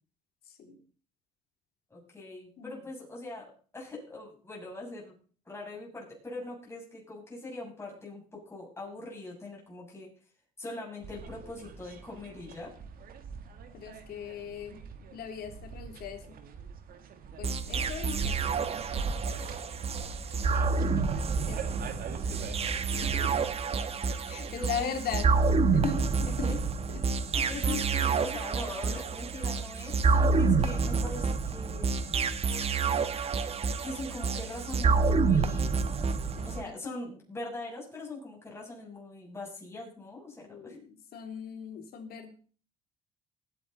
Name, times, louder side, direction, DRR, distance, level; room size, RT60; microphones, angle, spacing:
voice 1, 0.4-0.8 2.6-2.8 13.7-14.8 15.1-16.3 17.4-18.5 21.5-21.6 22.9-23.3 24.3-25.3 25.7-26.6 26.9-27.0 27.5-27.8 36.4-36.7 40.4-42.3, left 6 dB, 65° left, 4 dB, 3.1 m, -39 dB
voice 2, 1.9-5.2 5.5-10.1 10.6-12.7 20.3-20.6 24.3-25.0 25.7-25.8 26.4-26.6 27.3-32.2 33.8-36.0 36.4-40.8, left 2 dB, 15° left, -3 dB, 7.1 m, -42 dB
sound 1, 11.0-23.5, right 5 dB, 60° right, 1.9 m, -41 dB
sound 2, 17.4-36.6, right 4 dB, 35° right, 1.1 m, -28 dB
20.0 x 8.7 x 4.1 m, 0.41 s
cardioid pair, 110°, 17 cm